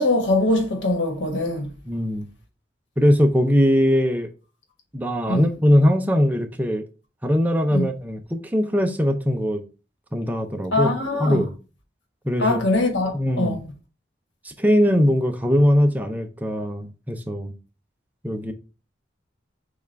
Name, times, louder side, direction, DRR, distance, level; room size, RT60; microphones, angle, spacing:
voice 1, 0.0-1.7 5.3-5.4 7.7-7.8 10.7-11.4 12.4-13.6, left 2 dB, 80° left, 1.3 m, -22 dB
voice 2, 1.9-2.3 3.0-4.3 4.9-6.8 7.2-9.6 10.1-10.9 11.2-11.5 12.2-12.6 13.1-13.6 14.4-17.5 18.2-18.5, equal, 10° right, 0.5 m, -21 dB
6.7 x 2.4 x 3.3 m
head